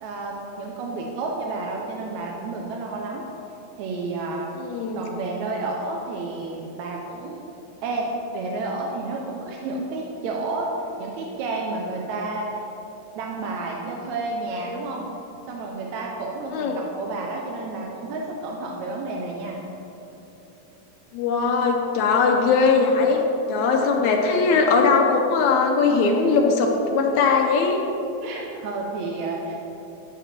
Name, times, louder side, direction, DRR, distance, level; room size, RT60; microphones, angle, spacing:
voice 1, 0.0-3.2 3.8-4.5 5.0-7.4 7.8-10.7 11.0-12.7 13.2-15.1 15.5-19.6 28.2-29.6, right 3 dB, 75° right, -1 dB, 1.8 m, -30 dB
voice 2, 4.6-5.0 16.5-16.8 21.1-23.2 23.5-27.8, left 4 dB, 75° left, 1 dB, 1.8 m, -20 dB
9.9 x 7.0 x 4.3 m, 3.0 s
omnidirectional pair, 3.8 m